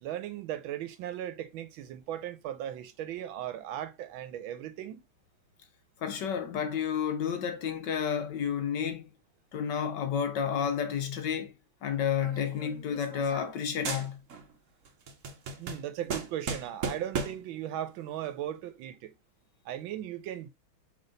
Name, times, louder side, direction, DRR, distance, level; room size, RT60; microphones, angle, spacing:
voice 1, 0.0-5.0 15.6-19.1 19.6-20.5, right 11 dB, 80° right, 1.4 m, -37 dB
voice 2, 6.0-9.0 9.5-11.5 11.8-14.2, left 8 dB, 65° left, 1.3 m, -31 dB
sound 1, 12.2-13.6 13.8-14.5 14.8-17.5, right 5 dB, 55° right, 0.9 m, -37 dB
3.9 x 3.5 x 3.8 m
omnidirectional pair, 2.2 m